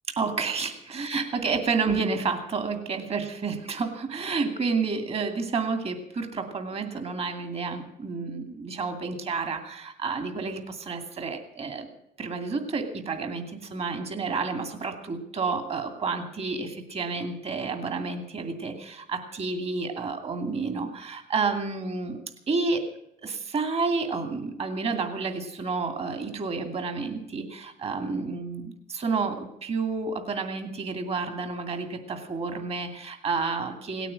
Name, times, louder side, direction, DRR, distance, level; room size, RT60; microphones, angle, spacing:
voice 1, 0.1-11.9 12.2-22.2 22.5-22.9 23.2-34.1, right 4 dB, 35° right, 7 dB, 2.5 m, -30 dB
18.0 x 9.1 x 8.7 m, 0.79 s
cardioid pair, 110°, 17 cm